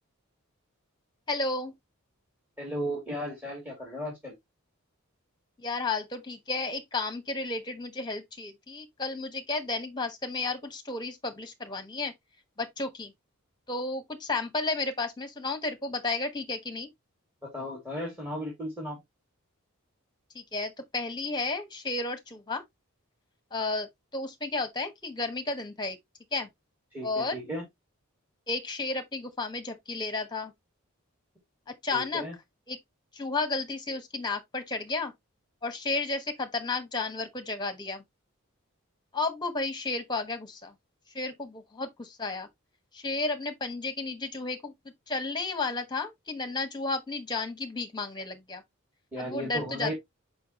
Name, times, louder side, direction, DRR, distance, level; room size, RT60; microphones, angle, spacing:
voice 1, 1.3-1.7 5.6-12.1 12.6-13.1 13.7-16.9 20.3-22.6 23.5-26.0 26.3-26.5 27.0-27.4 28.5-30.5 31.8-32.2 32.7-32.8 33.1-35.1 35.6-38.0 39.1-40.7 41.1-42.5 42.9-44.7 45.1-48.6 49.2-49.9, left 3 dB, 20° left, 1.2 m, -32 dB
voice 2, 2.6-4.3 17.5-19.0 26.9-27.6 31.9-32.3 49.1-49.9, equal, 10° right, 2.8 m, -35 dB
5.8 x 5.5 x 3.0 m
head